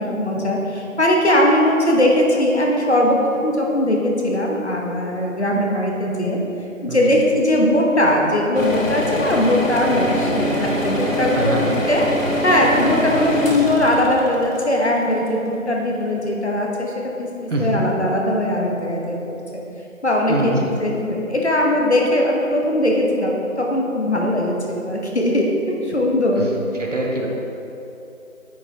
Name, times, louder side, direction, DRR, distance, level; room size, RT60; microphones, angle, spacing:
voice 1, 0.0-6.4 6.8-16.9 17.2-17.3 17.6-19.4 20.0-23.3 23.6-25.5 25.9-26.5, left 1 dB, 50° left, -1 dB, 1.0 m, -20 dB
voice 2, 6.9-7.2 11.3-11.7 17.5-17.7 20.3-20.8 26.4-26.5 26.8-27.3, right 2 dB, 60° right, -1 dB, 1.1 m, -24 dB
sound 1, 8.5-15.5, equal, 70° left, 1.4 m, -24 dB
9.3 x 5.3 x 2.8 m, 2.9 s
figure-of-eight pair, 180°, 41 cm